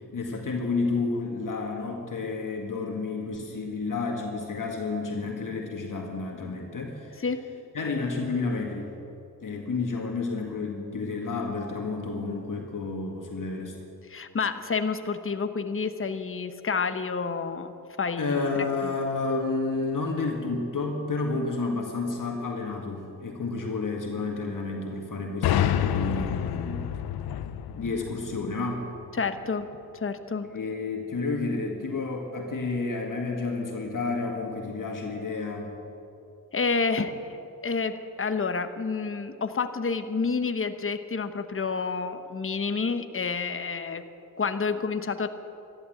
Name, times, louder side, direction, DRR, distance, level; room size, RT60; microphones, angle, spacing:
voice 1, 0.1-7.2 7.7-8.9 9.4-13.8 18.2-26.9 27.7-28.9 30.5-35.7, left 3 dB, 60° left, 1 dB, 1.9 m, -30 dB
voice 2, 14.1-17.7 18.0-18.4 18.8-18.9 29.2-29.7 30.0-30.5 36.5-44.0 44.4-45.3, left 4 dB, 35° left, 9 dB, 1.1 m, -29 dB
sound 1, 25.4-29.1, left 10 dB, 80° left, 0.6 m, -28 dB
12.5 x 12.5 x 7.9 m, 2.8 s
cardioid pair, 50°, 37 cm